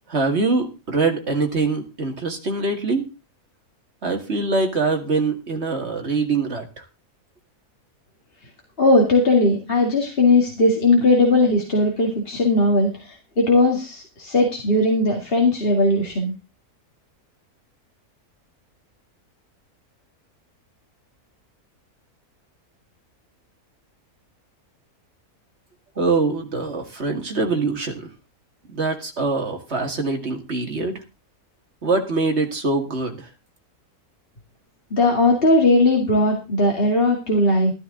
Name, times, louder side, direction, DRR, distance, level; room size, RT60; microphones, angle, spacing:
voice 1, 0.1-3.1 4.0-6.6 26.0-28.1 28.7-31.0 31.8-33.2, right 3 dB, 45° right, 3 dB, 2.3 m, -23 dB
voice 2, 8.8-16.3 34.9-37.7, left 2 dB, 40° left, 0 dB, 2.5 m, -18 dB
13.5 x 12.5 x 3.8 m, 0.29 s
omnidirectional pair, 1.6 m